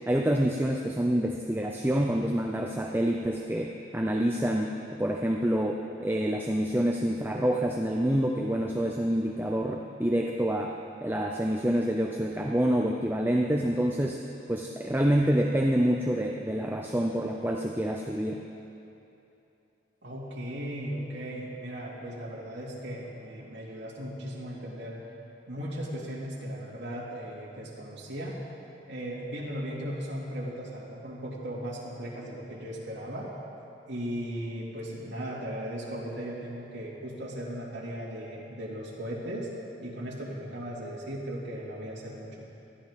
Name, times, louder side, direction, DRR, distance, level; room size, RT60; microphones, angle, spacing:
voice 1, 0.1-10.7 11.0-14.2 14.5-18.4, equal, 10° right, 1 dB, 0.5 m, -27 dB
voice 2, 20.0-25.0 25.5-28.4 28.9-33.3 33.9-39.5 39.8-42.4, equal, 75° right, -6 dB, 2.5 m, -37 dB
19.5 x 13.5 x 3.7 m, 2.8 s
head